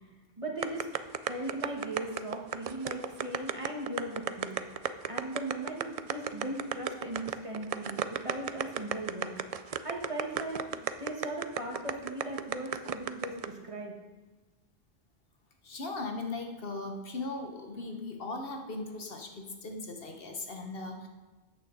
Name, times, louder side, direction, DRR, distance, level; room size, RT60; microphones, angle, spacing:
voice 1, 0.4-4.6 5.0-9.4 9.8-13.9, right 1 dB, 30° right, 0 dB, 1.7 m, -38 dB
sound 1, 0.6-13.5, right 8 dB, 55° right, 0.4 m, -33 dB
voice 2, 15.6-21.1, left 3 dB, 65° left, 3 dB, 1.3 m, -38 dB
13.0 x 8.9 x 4.0 m, 1.2 s
omnidirectional pair, 1.1 m